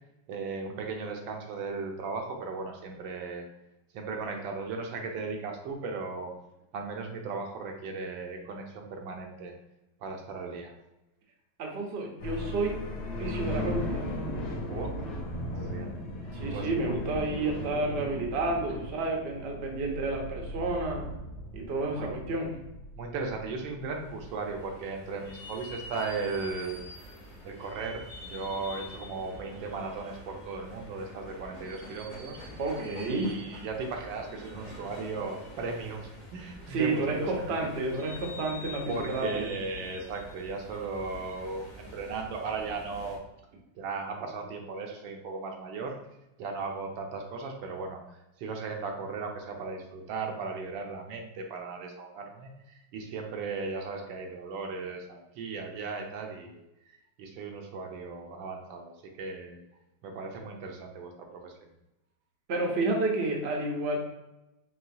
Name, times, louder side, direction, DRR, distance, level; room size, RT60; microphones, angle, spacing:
voice 1, 0.3-3.5 3.9-6.3 6.7-9.5 10.0-10.7 14.7-14.9 15.5-16.0 16.5-17.0 21.9-22.1 23.0-26.8 27.4-32.4 33.1-37.5 37.8-37.9 38.9-43.2 43.7-45.9 46.4-59.6 60.0-61.5, right 4 dB, 80° right, 2 dB, 1.3 m, -37 dB
voice 2, 11.6-12.8 13.2-14.1 16.3-21.1 21.5-22.5 32.6-33.3 36.7-39.5 62.5-64.0, right 2 dB, 55° right, 0 dB, 0.7 m, -30 dB
sound 1, 12.2-24.7, left 1 dB, 90° left, 1.5 m, -37 dB
sound 2, 23.8-43.2, left 1 dB, 45° left, 0.4 m, -46 dB
4.8 x 3.0 x 2.7 m, 0.93 s
omnidirectional pair, 2.1 m